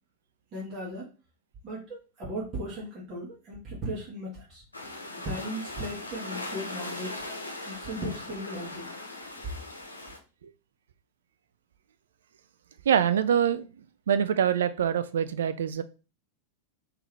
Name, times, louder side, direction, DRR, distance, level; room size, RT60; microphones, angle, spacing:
voice 1, 0.5-1.1 1.6-4.6 5.2-7.2 7.6-8.9, equal, 30° right, 1.5 m, -37 dB
sound 1, 4.7-10.2, left 2 dB, 80° left, 0.7 m, -39 dB
voice 2, 12.9-13.7 14.1-15.8, right 8 dB, 65° right, 0.3 m, -24 dB
3.5 x 3.0 x 3.3 m
figure-of-eight pair, 90°, 0 cm